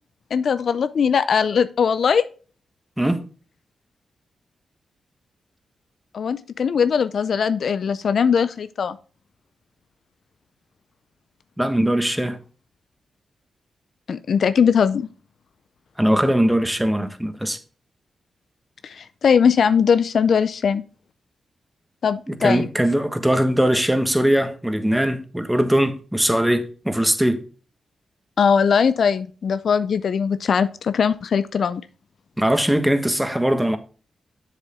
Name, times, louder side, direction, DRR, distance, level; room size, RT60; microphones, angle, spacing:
voice 1, 0.3-2.2 6.1-9.0 14.1-15.1 18.8-20.8 22.0-22.7 28.4-31.8, left 6 dB, 70° left, 0.5 m, -20 dB
voice 2, 11.6-12.4 16.0-17.6 22.3-27.4 32.4-33.8, right 1 dB, 10° right, 1.4 m, -20 dB
7.3 x 6.8 x 3.6 m
supercardioid pair, 45°, 0 cm